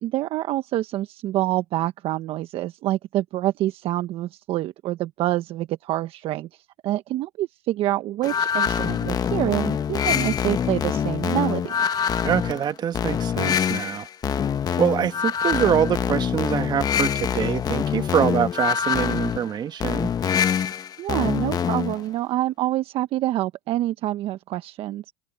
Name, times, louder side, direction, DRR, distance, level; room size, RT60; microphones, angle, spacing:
voice 1, 0.0-6.5 6.8-11.9 21.0-25.1, right 15 dB, 55° right, 1.3 m, -26 dB
sound 1, 8.2-22.0, left 8 dB, 35° left, 1.3 m, -25 dB
voice 2, 12.2-14.1 14.8-20.1, right 9 dB, 40° right, 1.9 m, -24 dB
open air
hypercardioid pair, 90°, 12 cm